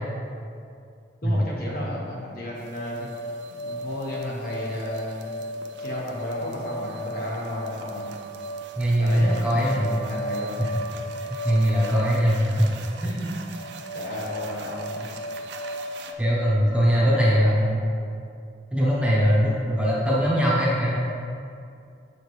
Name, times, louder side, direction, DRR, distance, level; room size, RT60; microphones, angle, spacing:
voice 1, 1.2-3.1 3.5-5.4 5.8-8.1 9.0-10.6 13.9-15.1 16.7-17.5, left 1 dB, 50° left, -4 dB, 1.3 m, -33 dB
sound 1, 2.5-16.1, right 1 dB, 70° right, 0.5 m, -35 dB
voice 2, 8.8-9.8 11.3-12.7 13.0-13.3 16.2-17.8 18.7-21.0, equal, 5° right, -6 dB, 0.8 m, -21 dB
7.6 x 5.0 x 3.1 m, 2.5 s
head